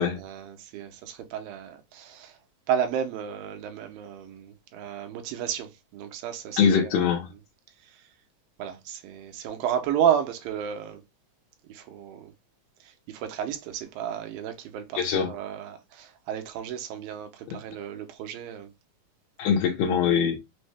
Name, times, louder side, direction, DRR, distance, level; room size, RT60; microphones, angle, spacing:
voice 1, 0.0-2.4 2.7-7.1 7.8-8.0 8.6-11.0 11.7-12.3 12.8-18.7, right 9 dB, 90° right, 2.5 m, -32 dB
voice 2, 6.6-7.3 15.0-15.3 17.5-17.6 19.4-20.4, left 7 dB, 80° left, 2.6 m, -23 dB
6.2 x 2.1 x 3.3 m
omnidirectional pair, 4.0 m